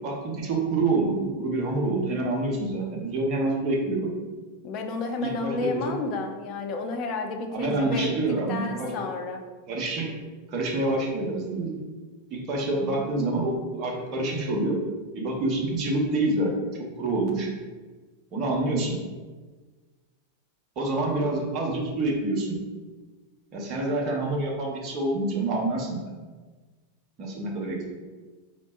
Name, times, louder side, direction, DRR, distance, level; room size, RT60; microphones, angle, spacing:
voice 1, 0.0-4.1 5.2-5.9 7.5-8.9 9.7-10.1 10.5-11.8 12.3-14.8 15.1-16.7 17.0-17.5 18.3-19.0 20.8-22.6 23.5-26.1 27.2-27.9, right 2 dB, 35° right, 0 dB, 0.8 m, -27 dB
voice 2, 4.6-8.1 8.5-9.4, left 3 dB, 40° left, 4 dB, 0.4 m, -31 dB
3.8 x 3.4 x 2.4 m, 1.3 s
figure-of-eight pair, 90°, 0 cm